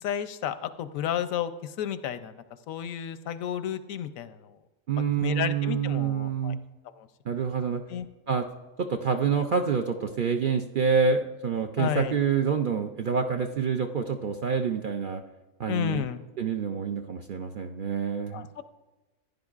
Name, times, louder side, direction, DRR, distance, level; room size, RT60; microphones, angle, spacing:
voice 1, 0.0-4.6 5.2-6.5 7.0-7.4 7.9-8.1 11.8-12.2 15.7-16.2 18.3-18.6, left 10 dB, 90° left, 12 dB, 1.0 m, -32 dB
voice 2, 4.9-6.6 7.3-7.8 8.3-8.5 8.8-15.2 15.6-16.0 16.4-18.6, right 6 dB, 60° right, 5 dB, 0.5 m, -27 dB
14.5 x 10.0 x 2.4 m, 1.1 s
omnidirectional pair, 1.4 m